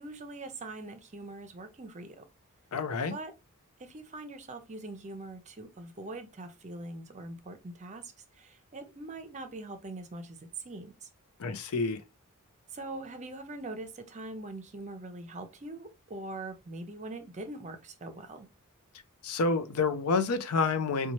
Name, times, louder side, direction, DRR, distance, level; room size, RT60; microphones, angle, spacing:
voice 1, 0.0-2.2 3.1-3.3 3.8-11.1 12.7-18.5, right 2 dB, 30° right, 0.6 m, -42 dB
voice 2, 2.7-3.1 11.4-12.0 19.2-21.1, left 4 dB, 85° left, 0.5 m, -28 dB
4.1 x 2.3 x 3.0 m
head